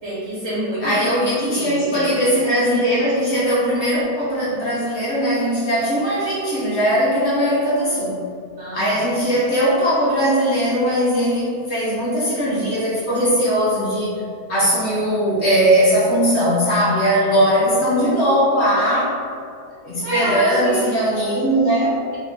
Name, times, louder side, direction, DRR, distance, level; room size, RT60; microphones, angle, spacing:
voice 1, 0.0-2.1 8.6-9.1 17.1-17.3 20.0-20.8, right 1 dB, 40° right, -12 dB, 1.6 m, -28 dB
voice 2, 0.8-8.2 8.7-14.2 14.5-19.2 19.8-22.0, equal, 50° left, -8 dB, 1.0 m, -19 dB
4.0 x 2.6 x 3.5 m, 2.3 s
omnidirectional pair, 1.8 m